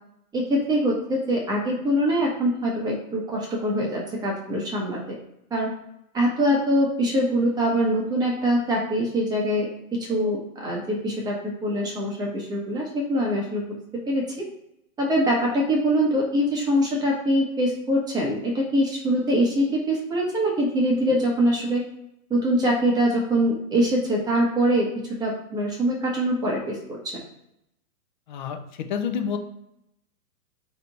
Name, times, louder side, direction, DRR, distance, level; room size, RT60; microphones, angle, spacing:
voice 1, 0.3-5.0 5.5-5.7 6.1-9.7 10.1-13.6 14.1-14.2 15.0-21.8 22.3-24.9 25.2-27.2, equal, 10° right, -2 dB, 0.7 m, -23 dB
voice 2, 28.3-29.4, left 7 dB, 35° left, 6 dB, 0.4 m, -29 dB
3.3 x 2.9 x 3.9 m, 0.81 s
hypercardioid pair, 140°, 44 cm